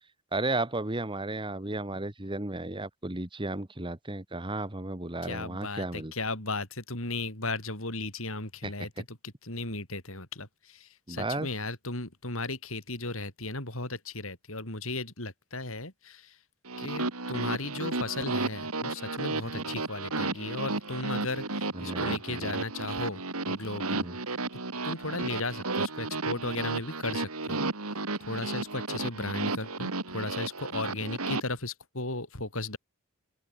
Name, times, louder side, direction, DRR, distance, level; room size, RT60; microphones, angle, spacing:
voice 1, 0.3-6.1 8.6-8.7 11.1-11.5 19.5-19.6 21.7-22.6 23.9-24.1, right 2 dB, 25° right, 1.7 m, -34 dB
voice 2, 5.2-16.4 16.8-24.1 24.8-27.6 28.3-32.8, left 2 dB, 65° left, 7.7 m, -36 dB
sound 1, 16.7-31.4, right 3 dB, 90° right, 3.9 m, -33 dB
open air
head